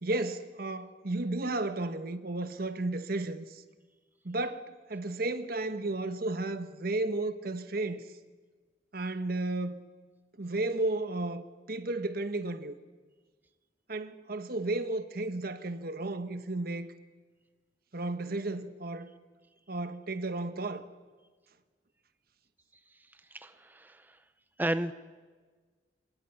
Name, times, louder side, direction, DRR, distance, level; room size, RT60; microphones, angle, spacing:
voice 1, 0.0-3.6 4.2-8.0 8.9-9.8 10.4-12.7 13.9-16.9 17.9-19.1 19.7-20.8, right 2 dB, 60° right, 1.3 m, -33 dB
voice 2, 23.3-24.2 24.6-24.9, right 1 dB, 10° right, 0.6 m, -33 dB
27.0 x 23.5 x 5.8 m
head